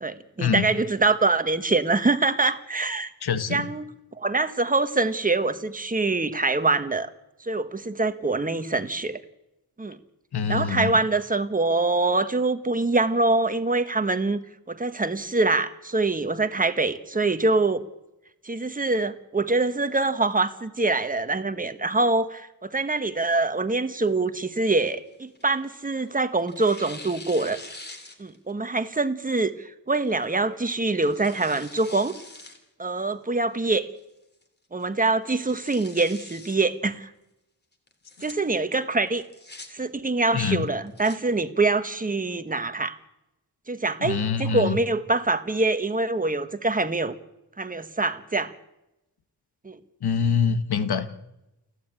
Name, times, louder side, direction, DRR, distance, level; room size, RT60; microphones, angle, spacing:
voice 1, 0.0-3.1 3.5-3.9 4.2-7.1 7.4-9.2 9.8-10.0 10.5-14.4 14.7-17.8 18.4-27.6 28.2-32.1 32.8-33.9 34.7-37.1 38.2-39.2 39.7-43.0 43.7-47.1 47.6-48.5 49.6-49.8, right 3 dB, 20° right, 10 dB, 1.3 m, -24 dB
voice 2, 3.2-3.7 10.3-10.9 40.3-40.7 44.0-44.8 50.0-51.1, left 6 dB, 75° left, 11 dB, 1.6 m, -25 dB
Tearing, 24.7-26.0 26.5-28.5 28.9-29.0 29.9-30.2 30.8-32.6 33.0-33.1 33.6-34.0 34.4-34.5 34.8-34.9 35.3-36.6 37.9-38.3 39.1-39.7 40.7-41.2, left 2 dB, 25° left, 3.0 m, -44 dB
29.5 x 10.5 x 8.9 m, 0.90 s
wide cardioid pair, 160°, 38 cm